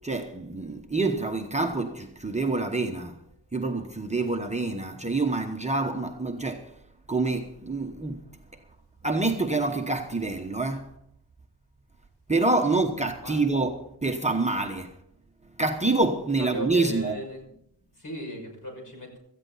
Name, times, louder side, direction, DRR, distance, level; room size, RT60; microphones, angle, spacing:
voice 1, 0.0-3.2 3.5-6.8 7.1-8.2 9.0-10.9 12.3-15.0 15.6-17.2, right 3 dB, 15° right, 1.0 m, -27 dB
voice 2, 16.4-17.5 17.9-19.2, equal, 50° left, 6.0 m, -37 dB
17.5 x 14.0 x 4.0 m
wide cardioid pair, 140°, 42 cm